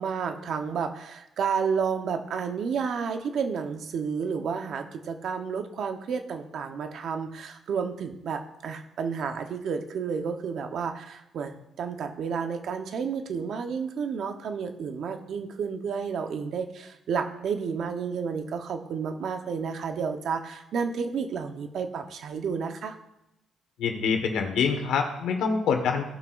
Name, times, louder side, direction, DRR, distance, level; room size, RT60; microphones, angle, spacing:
voice 1, 0.0-23.0, right 6 dB, 65° right, 6 dB, 1.0 m, -31 dB
voice 2, 23.8-26.1, left 6 dB, 80° left, 4 dB, 1.5 m, -25 dB
16.5 x 5.9 x 2.6 m, 0.87 s
cardioid pair, 90°, 0 cm